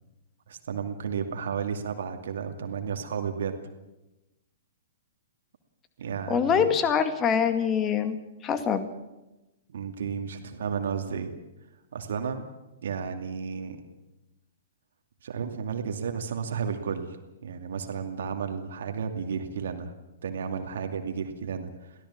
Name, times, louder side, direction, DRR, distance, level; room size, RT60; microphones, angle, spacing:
voice 1, 0.5-3.7 6.0-6.7 9.7-11.3 11.9-12.5 12.8-13.8 15.2-19.9 20.2-21.9, right 6 dB, 60° right, 5 dB, 2.3 m, -33 dB
voice 2, 6.3-8.2 8.4-8.9, left 7 dB, 25° left, 10 dB, 2.1 m, -24 dB
23.5 x 16.5 x 7.4 m, 1.0 s
figure-of-eight pair, 110°, 0 cm